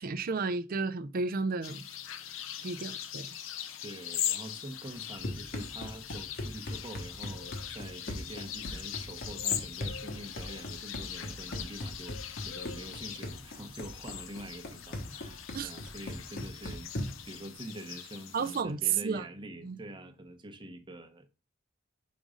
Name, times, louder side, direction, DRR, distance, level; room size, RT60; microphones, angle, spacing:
voice 1, 0.0-1.8 2.6-3.3 15.5-15.7 18.3-19.2 19.6-19.8, right 5 dB, 45° right, 0.5 m, -32 dB
sound 1, 1.6-18.6, left 10 dB, 75° left, 0.6 m, -40 dB
voice 2, 2.6-2.9 3.8-16.9 17.2-21.3, right 1 dB, 25° right, 0.8 m, -45 dB
Run, 4.9-17.3, left 1 dB, 50° left, 1.1 m, -40 dB
5.2 x 3.9 x 4.9 m
head